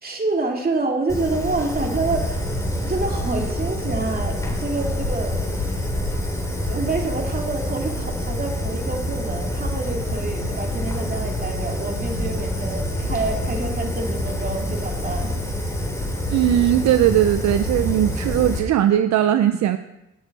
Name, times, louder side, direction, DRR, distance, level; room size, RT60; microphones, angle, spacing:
voice 1, 0.0-2.5 2.8-5.5 6.7-15.3, right 3 dB, 30° right, 1 dB, 2.3 m, -27 dB
Fire, 1.1-18.6, left 1 dB, 10° left, 2.9 m, -26 dB
voice 2, 16.3-19.8, right 11 dB, 65° right, 10 dB, 0.6 m, -19 dB
17.0 x 6.3 x 4.1 m, 0.92 s
cardioid pair, 90°, 30 cm